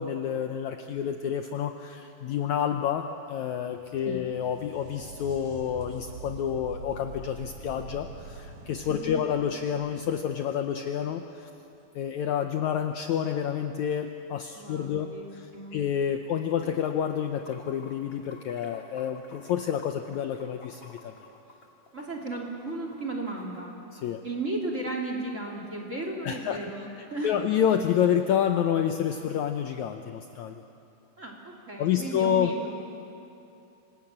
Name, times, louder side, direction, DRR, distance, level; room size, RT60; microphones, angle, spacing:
voice 1, 0.0-11.5 12.0-15.5 15.7-21.1 23.9-24.2 26.2-30.6 31.8-32.5, left 9 dB, 70° left, 5 dB, 1.9 m, -29 dB
sound 1, 3.5-11.0 14.4-14.5 15.6-15.7, right 3 dB, 60° right, 3.4 m, -45 dB
voice 2, 8.9-9.2 14.6-15.8 21.9-23.8 24.2-27.4 31.2-32.7, right 2 dB, 25° right, 1 dB, 2.5 m, -35 dB
Water / Sink (filling or washing), 17.1-23.6, left 3 dB, 25° left, 2.2 m, -52 dB
26.5 x 19.5 x 8.7 m, 2.7 s
omnidirectional pair, 4.0 m